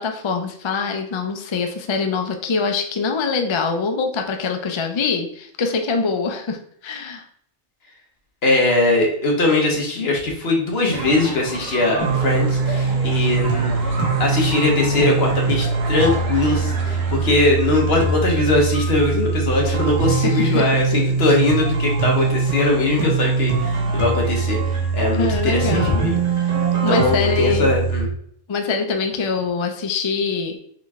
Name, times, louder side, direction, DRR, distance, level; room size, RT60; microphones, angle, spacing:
voice 1, 0.0-7.2 20.1-20.7 25.1-26.0 26.4-27.7 28.5-30.6, left 4 dB, 45° left, 5 dB, 0.3 m, -24 dB
voice 2, 8.4-26.2 26.9-28.1, left 2 dB, 65° left, 0 dB, 1.3 m, -21 dB
sound 1, 10.9-17.4, right 3 dB, 65° right, 1.0 m, -31 dB
sound 2, 12.0-28.0, right 4 dB, 85° right, 1.5 m, -22 dB
3.9 x 3.2 x 3.5 m, 0.66 s
omnidirectional pair, 1.1 m